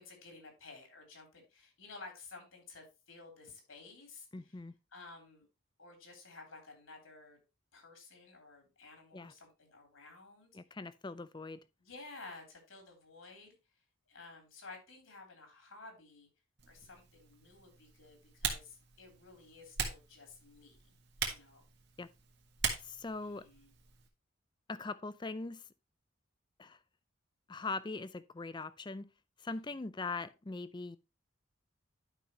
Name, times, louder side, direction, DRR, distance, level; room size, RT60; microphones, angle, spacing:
voice 1, 0.0-4.3 4.9-5.5 5.8-7.4 7.7-10.5 11.8-13.6 14.1-16.3 16.7-21.6 23.2-23.7 29.5-29.6, left 3 dB, 75° left, 3.3 m, -53 dB
voice 2, 4.3-4.7 9.1-9.3 10.5-11.6 22.0-22.1 22.8-23.5 24.7-25.7 26.6-26.8 27.5-29.1 29.4-31.0, left 3 dB, 20° left, 0.4 m, -41 dB
Typing, 16.6-24.1, right 6 dB, 55° right, 1.7 m, -42 dB
11.0 x 5.6 x 3.0 m
head